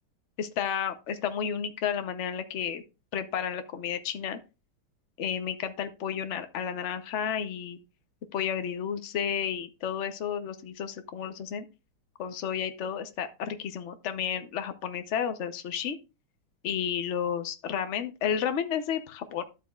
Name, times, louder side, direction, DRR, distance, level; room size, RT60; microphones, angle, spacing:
voice 1, 0.4-2.8 3.1-4.4 5.2-7.8 8.3-11.6 12.2-16.0 16.6-19.4, left 8 dB, 90° left, 9 dB, 0.6 m, -32 dB
11.5 x 8.1 x 2.3 m, 0.28 s
omnidirectional pair, 2.3 m